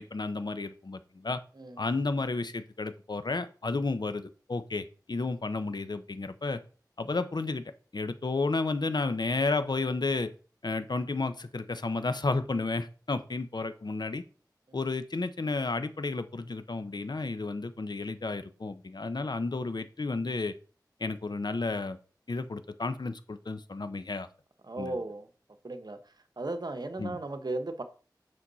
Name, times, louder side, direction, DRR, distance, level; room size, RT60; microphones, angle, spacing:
voice 1, 0.0-1.4 1.8-6.6 7.0-7.6 7.9-10.3 10.6-14.2 14.7-20.5 21.0-22.0 22.3-24.3 24.8-25.0 27.0-27.2, left 3 dB, 75° left, 11 dB, 0.8 m, -32 dB
voice 2, 1.6-1.9 14.7-14.8 24.6-25.3 25.6-26.0 26.4-27.8, right 2 dB, 65° right, 9 dB, 1.1 m, -36 dB
8.6 x 6.4 x 4.1 m, 0.38 s
wide cardioid pair, 50°, 7 cm